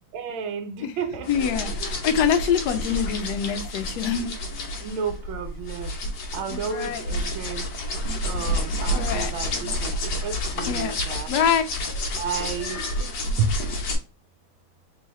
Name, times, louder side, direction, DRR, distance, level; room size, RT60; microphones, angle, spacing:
voice 1, 0.1-1.5 4.8-5.9 6.3-7.7 8.2-11.3 12.2-13.1 13.4-13.5, right 6 dB, 75° right, 1.5 m, -32 dB
sound 1, 1.2-13.9, left 1 dB, 60° left, 1.4 m, -29 dB
voice 2, 1.3-1.7 2.0-4.3 6.5-7.0 8.9-9.3 10.7-10.9 11.3-11.6, left 8 dB, 75° left, 0.9 m, -24 dB
3.7 x 3.4 x 3.0 m
omnidirectional pair, 2.3 m